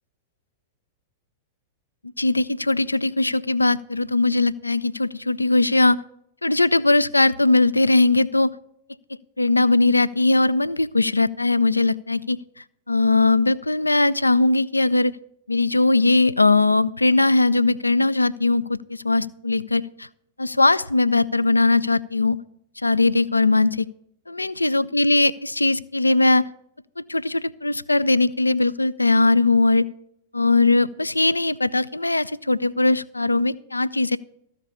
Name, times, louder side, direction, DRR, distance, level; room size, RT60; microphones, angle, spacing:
voice 1, 2.2-6.0 6.4-8.5 9.4-12.4 12.9-15.1 15.5-20.1 20.4-22.4 22.8-23.9 24.3-26.5 27.1-29.9 30.3-34.2, left 2 dB, 80° left, 17 dB, 0.3 m, -20 dB
14.0 x 5.2 x 6.8 m, 0.73 s
figure-of-eight pair, 95°, 0 cm